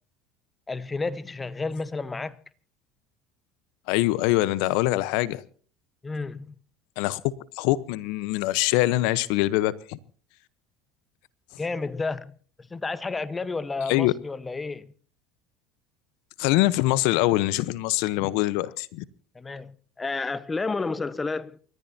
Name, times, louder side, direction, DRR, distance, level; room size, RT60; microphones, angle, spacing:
voice 1, 0.7-2.4 6.0-6.5 11.6-14.9 19.3-21.6, left 3 dB, 20° left, 1.2 m, -31 dB
voice 2, 3.9-5.4 7.0-7.2 7.5-10.0 13.9-14.1 16.4-19.0, left 17 dB, 70° left, 1.0 m, -23 dB
28.5 x 14.5 x 2.8 m
hypercardioid pair, 85°, 0 cm